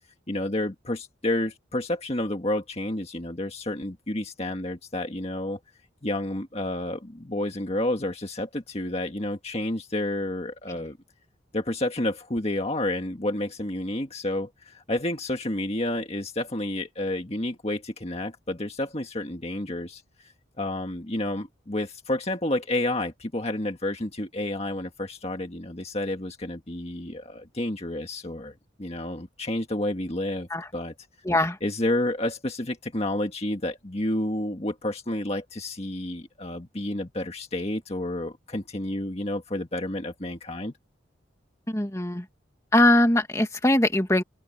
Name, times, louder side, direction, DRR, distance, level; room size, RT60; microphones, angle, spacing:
voice 1, 0.3-5.6 6.0-11.0 11.5-30.9 31.6-40.7, left 1 dB, 35° left, 1.7 m, -30 dB
voice 2, 31.3-31.6 41.7-42.2 42.7-44.2, left 1 dB, 15° left, 2.2 m, -21 dB
open air
head